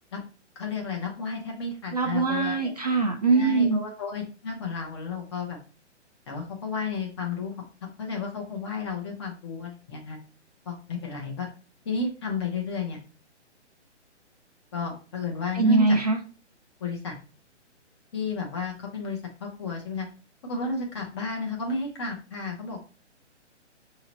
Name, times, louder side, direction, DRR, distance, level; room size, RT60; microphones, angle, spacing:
voice 1, 0.6-2.7 3.3-5.6 6.3-7.5 8.0-10.2 10.7-11.5 11.8-13.0 14.7-16.0 16.8-17.1 18.1-20.1 20.4-22.8, left 4 dB, 25° left, 0 dB, 0.8 m, -32 dB
voice 2, 1.9-3.8 15.5-16.2, right 3 dB, 35° right, 3 dB, 0.4 m, -22 dB
5.5 x 2.8 x 2.9 m, 0.36 s
hypercardioid pair, 155°, 36 cm